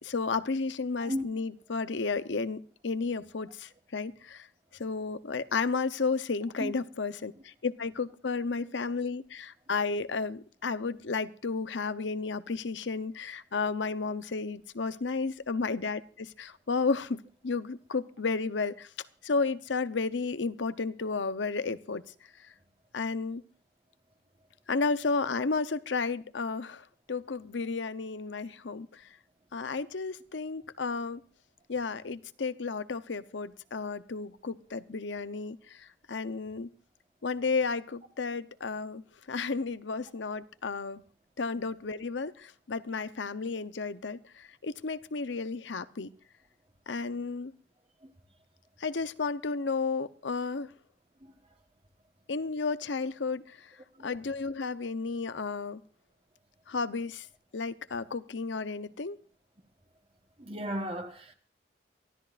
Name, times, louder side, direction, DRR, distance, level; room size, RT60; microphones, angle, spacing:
voice 1, 0.0-4.5 4.8-18.9 19.2-22.0 22.9-23.4 24.7-29.1 29.5-31.2 31.7-36.7 37.2-39.0 39.3-41.0 41.4-46.1 46.9-47.5 48.8-50.7 52.3-53.7 54.0-55.8 56.7-57.3 57.5-59.2, left 4 dB, 80° left, 0.8 m, -32 dB
voice 2, 60.4-61.3, equal, 30° right, 1.2 m, -34 dB
24.0 x 15.5 x 2.5 m
head